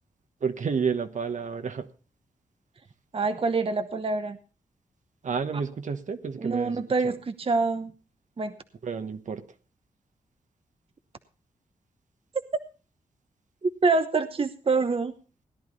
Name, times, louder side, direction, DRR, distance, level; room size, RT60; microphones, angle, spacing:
voice 1, 0.4-1.9 5.2-7.1 8.8-9.4, right 5 dB, 60° right, 8 dB, 1.2 m, -30 dB
voice 2, 3.1-4.4 6.4-7.9 8.4-8.6 13.6-15.1, right 4 dB, 40° right, 8 dB, 1.0 m, -26 dB
17.0 x 10.5 x 4.0 m, 0.36 s
cardioid pair, 60°, 14 cm